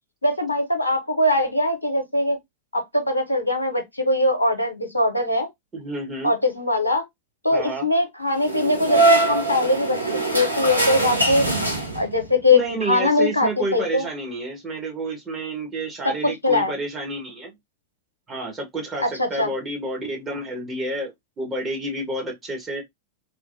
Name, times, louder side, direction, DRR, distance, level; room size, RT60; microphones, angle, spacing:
voice 1, 0.2-2.4 2.7-5.5 6.2-7.0 7.4-10.0 10.3-14.0 16.0-16.7 19.0-19.5, left 2 dB, 85° left, 0.7 m, -22 dB
voice 2, 5.7-6.3 7.5-7.9 12.5-17.5 18.3-22.8, right 2 dB, 20° right, 1.3 m, -30 dB
sound 1, 8.4-12.3, right 2 dB, 90° right, 0.7 m, -22 dB
3.2 x 2.4 x 2.5 m
figure-of-eight pair, 90°, 0 cm